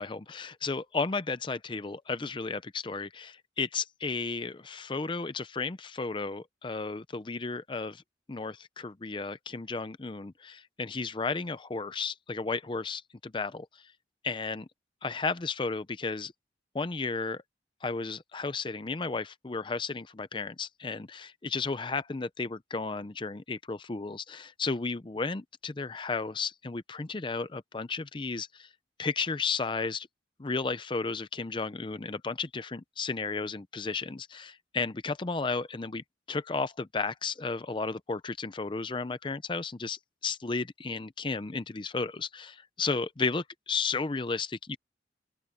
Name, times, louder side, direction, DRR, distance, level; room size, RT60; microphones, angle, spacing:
voice 1, 0.0-8.0 8.3-13.7 14.2-14.7 15.0-16.3 16.7-17.4 17.8-28.7 29.0-30.1 30.4-44.8, left 4 dB, 25° left, 0.5 m, -33 dB
open air
head